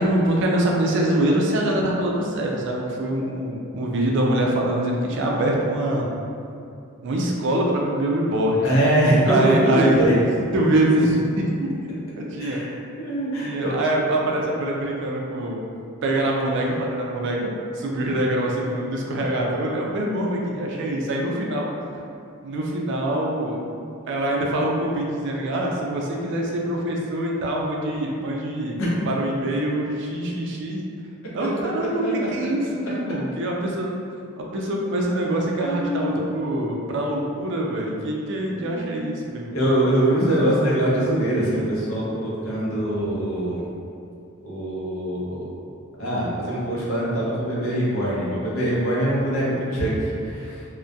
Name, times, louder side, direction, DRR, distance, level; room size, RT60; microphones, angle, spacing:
voice 1, 0.0-6.1 7.0-8.6 9.3-10.1 10.5-11.7 12.2-12.6 13.4-15.6 16.0-21.7 22.4-23.6 24.1-28.8 29.1-30.8 31.3-33.9 34.4-39.6, right 1 dB, 60° right, -1 dB, 0.3 m, -24 dB
voice 2, 8.6-10.1 12.4-12.7 13.0-13.8 28.8-28.9 31.4-31.5 32.0-32.2 35.6-36.2 38.5-39.1 39.5-43.6 44.4-45.6 46.0-50.7, right 1 dB, 75° left, -7 dB, 0.7 m, -23 dB
2.2 x 2.1 x 2.6 m, 2.5 s
head